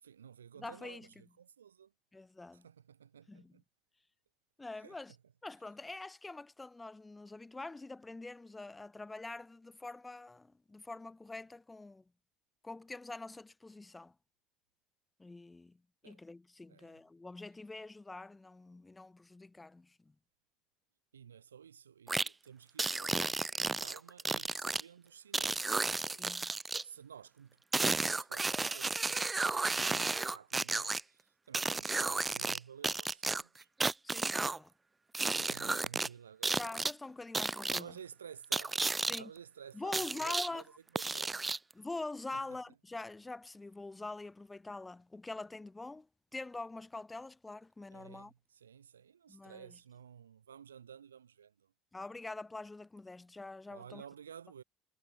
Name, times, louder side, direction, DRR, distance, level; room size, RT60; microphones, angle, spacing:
voice 1, 0.0-1.9 2.5-3.6 4.8-5.0 16.0-16.2 16.7-17.0 21.1-33.7 35.3-36.6 37.7-40.6 40.9-41.4 42.3-42.6 47.9-51.7 53.7-54.6, right 8 dB, 85° right, 5.4 m, -54 dB
voice 2, 0.6-1.1 2.1-2.6 3.3-3.5 4.6-5.1 5.4-12.0 12.6-14.1 15.2-15.8 16.0-20.1 26.1-26.5 34.0-34.7 36.6-37.9 39.1-39.3 39.7-40.6 41.7-46.1 46.3-48.3 49.3-49.7 51.9-54.0, left 2 dB, 15° left, 3.1 m, -45 dB
sound 1, 22.1-22.3 22.8-24.8 25.3-26.8 27.7-31.0 31.5-32.6 32.8-34.6 35.1-36.1 36.4-36.9 37.3-37.8 38.5-39.2 39.9-40.5 41.0-41.7, right 3 dB, 20° right, 0.6 m, -33 dB
figure-of-eight pair, 60°, 0 cm